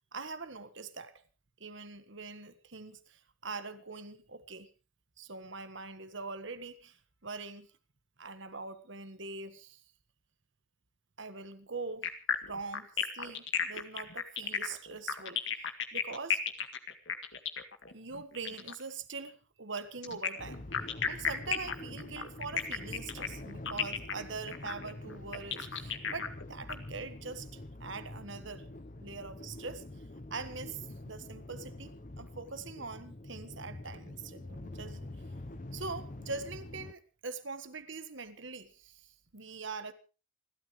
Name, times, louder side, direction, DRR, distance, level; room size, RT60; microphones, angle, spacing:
voice 1, 0.1-1.2 1.6-4.7 5.2-7.7 8.2-9.8 11.2-12.1 12.4-16.4 17.9-20.7 21.1-28.7 29.0-29.8 30.3-35.1 35.7-39.9, right 4 dB, 65° right, 1.5 m, -43 dB
sound 1, 12.0-18.8 20.0-26.7, left 7 dB, 65° left, 2.0 m, -34 dB
sound 2, 20.4-36.9, left 1 dB, 40° left, 0.9 m, -46 dB
29.0 x 13.0 x 3.3 m
head